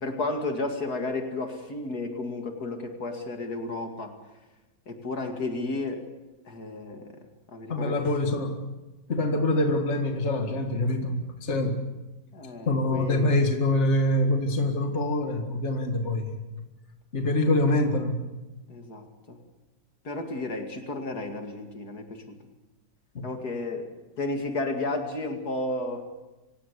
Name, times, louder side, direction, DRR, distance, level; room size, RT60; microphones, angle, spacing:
voice 1, 0.0-4.2 4.9-6.1 6.4-7.2 7.5-8.1 12.3-13.3 18.7-19.4 20.0-22.4 23.2-23.9 24.2-26.0, left 2 dB, 65° left, 5 dB, 2.7 m, -32 dB
voice 2, 7.7-8.7 9.1-11.9 12.7-16.3 17.1-18.2 23.1-23.3, left 1 dB, 40° left, 5 dB, 2.2 m, -25 dB
25.5 x 17.0 x 8.3 m, 1.1 s
omnidirectional pair, 1.8 m